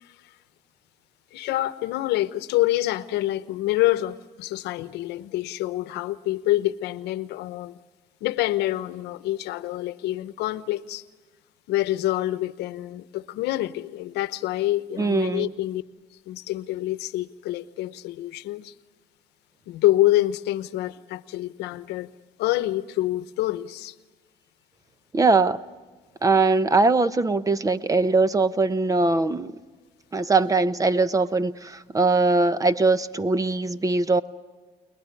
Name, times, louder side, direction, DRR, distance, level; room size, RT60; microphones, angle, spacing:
voice 1, 1.3-7.7 8.2-11.0 11.7-15.8 16.3-18.7 19.7-22.1 22.4-23.9, left 15 dB, 85° left, 1.0 m, -26 dB
voice 2, 15.0-15.5 25.1-25.6 26.2-29.6 30.1-34.2, right 3 dB, 20° right, 0.9 m, -21 dB
30.0 x 20.5 x 9.8 m
cardioid pair, 110°, 17 cm